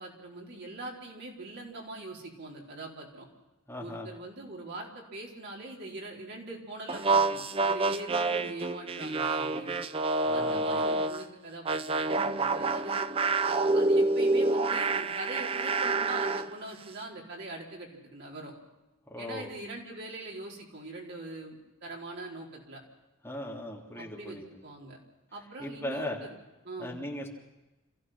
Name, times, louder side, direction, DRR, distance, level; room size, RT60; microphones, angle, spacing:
voice 1, 0.0-3.3 3.8-9.8 10.3-13.1 13.4-18.5 19.2-22.8 23.9-24.4 24.6-25.0 25.3-26.4 26.6-27.0, right 2 dB, 55° right, -2 dB, 4.7 m, -42 dB
voice 2, 3.7-4.1 10.2-10.8 19.1-19.5 23.2-24.5 25.6-26.2 26.8-27.3, left 1 dB, 10° left, -2 dB, 3.3 m, -38 dB
sound 1, 6.9-11.2 11.7-16.5, right 3 dB, 25° right, 0.6 m, -27 dB
27.5 x 15.5 x 6.1 m, 1.1 s
head